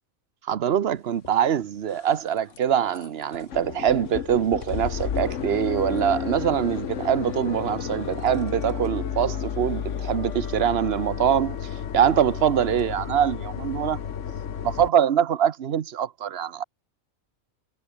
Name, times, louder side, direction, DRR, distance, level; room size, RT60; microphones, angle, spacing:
voice 1, 0.5-11.6 11.9-14.0 14.6-16.6, right 9 dB, 50° right, 1.0 m, -23 dB
sound 1, 1.2-1.3 1.8-2.2 2.5-2.6 3.0-3.1 3.3-14.9, left 8 dB, 60° left, 1.4 m, -32 dB
sound 2, 2.2-8.1 8.8-13.0, left 2 dB, 90° left, 7.6 m, -59 dB
omnidirectional pair, 1.5 m